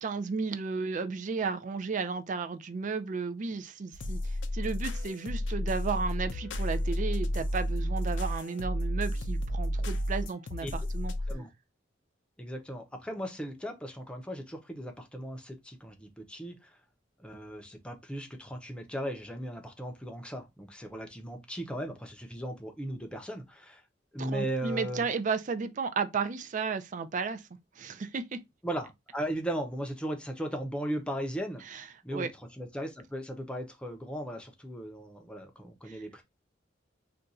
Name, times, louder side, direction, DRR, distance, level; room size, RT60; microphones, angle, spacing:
voice 1, 0.0-11.1 24.2-27.4 27.8-28.4 31.7-31.8 32.1-32.3 35.9-36.0, right 5 dB, 45° right, 0.4 m, -33 dB
Dre style rap loop, 3.9-11.3, equal, 85° left, 0.5 m, -32 dB
voice 2, 12.4-16.7 17.2-23.8 24.1-25.1 28.6-32.3 32.6-36.2, right 1 dB, 5° left, 0.6 m, -37 dB
2.5 x 2.3 x 4.0 m
head